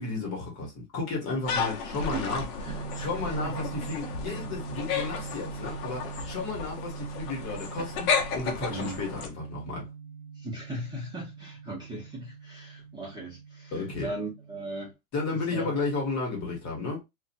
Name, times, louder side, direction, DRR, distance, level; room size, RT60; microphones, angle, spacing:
voice 1, 0.0-2.4 2.9-9.9 13.7-14.1 15.1-17.0, left 3 dB, 30° left, 1.3 m, -33 dB
sound 1, 1.4-9.3, left 6 dB, 55° left, 1.0 m, -33 dB
voice 2, 1.5-3.6 8.7-9.0 10.3-14.9 15.5-15.7, right 1 dB, 10° right, 1.0 m, -39 dB
sound 2, 2.7-14.9, right 6 dB, 60° right, 0.9 m, -42 dB
2.7 x 2.5 x 2.6 m
supercardioid pair, 135°, 50 cm